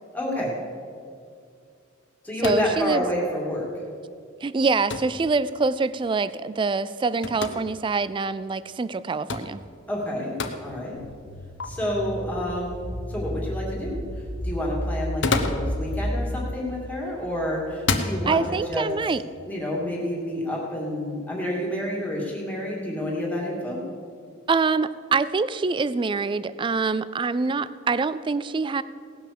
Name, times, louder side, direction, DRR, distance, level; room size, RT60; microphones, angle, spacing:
voice 1, 0.1-0.5 2.2-3.7 9.9-10.3 10.6-11.0 11.6-12.8 13.1-14.0 14.4-18.9 19.5-23.8, left 1 dB, 10° left, -3 dB, 2.5 m, -29 dB
sound 1, 2.4-2.8 4.9-5.2 7.2-7.6 9.3-9.5 10.4-10.6 11.6-11.7 15.0-15.7 16.8-17.2 17.8-18.2, left 4 dB, 60° left, 1.0 m, -27 dB
voice 2, 2.4-3.0 4.4-9.6 18.3-19.2 24.5-28.8, right 4 dB, 25° right, 16 dB, 0.3 m, -25 dB
sound 2, 10.9-16.3, equal, 85° left, 1.8 m, -32 dB
18.0 x 6.1 x 6.8 m, 2.3 s
head